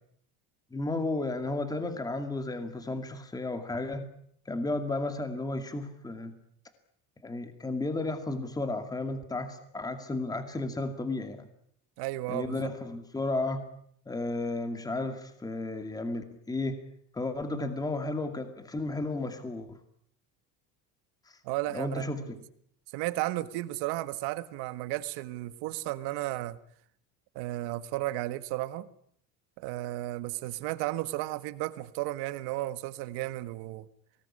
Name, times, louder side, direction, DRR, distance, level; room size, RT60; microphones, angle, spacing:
voice 1, 0.7-4.1 4.5-6.3 7.2-11.5 12.3-13.7 14.1-16.8 17.1-19.7 21.3-21.4 21.7-22.2, left 2 dB, 10° left, 8 dB, 2.3 m, -33 dB
voice 2, 12.0-12.7 21.4-22.4 22.9-26.6 27.4-28.9 29.6-33.9, right 16 dB, 75° right, 13 dB, 1.7 m, -34 dB
24.0 x 19.0 x 9.8 m, 0.67 s
cardioid pair, 165°, 40 cm